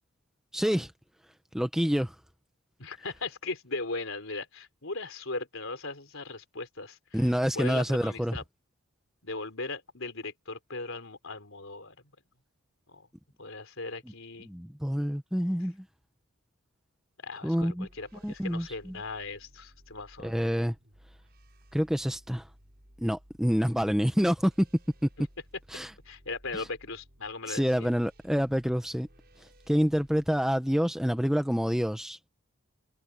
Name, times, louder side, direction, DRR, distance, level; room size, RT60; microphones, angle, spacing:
voice 1, 0.5-0.9 1.5-2.1 7.1-8.4 14.4-15.8 17.4-17.9 18.2-19.0 20.2-20.7 21.7-22.5 23.0-24.7 25.7-25.9 26.5-26.6 27.5-29.1 29.4-32.2, equal, ahead, 0.8 m, -27 dB
voice 2, 2.8-8.4 9.2-12.0 12.9-13.1 13.4-14.5 17.2-20.4 25.2-25.3 26.0-27.9, left 3 dB, 65° left, 4.0 m, -38 dB
sound 1, 17.6-30.4, equal, 45° right, 7.5 m, -58 dB
head